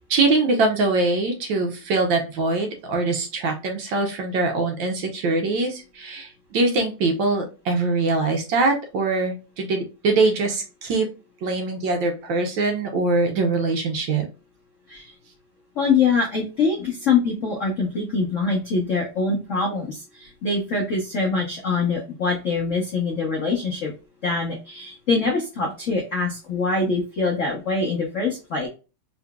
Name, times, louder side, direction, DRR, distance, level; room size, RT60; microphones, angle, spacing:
voice 1, 0.0-11.1 11.4-14.2, right 3 dB, 70° right, 3 dB, 1.2 m, -23 dB
voice 2, 15.8-23.9 24.2-28.7, left 4 dB, 75° left, -1 dB, 0.7 m, -24 dB
3.8 x 2.9 x 2.2 m, 0.31 s
omnidirectional pair, 2.4 m